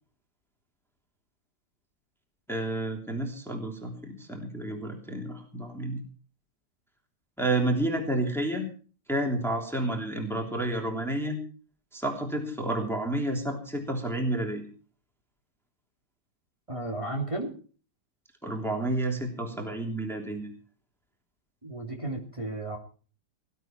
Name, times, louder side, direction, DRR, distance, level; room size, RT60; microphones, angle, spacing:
voice 1, 2.5-6.0 7.4-8.7 9.1-11.4 11.9-14.6 18.4-20.5, right 1 dB, ahead, 1 dB, 3.1 m, -30 dB
voice 2, 16.7-17.5 21.6-22.8, right 2 dB, 15° right, -1 dB, 3.2 m, -33 dB
19.5 x 12.5 x 4.6 m, 0.40 s
omnidirectional pair, 1.9 m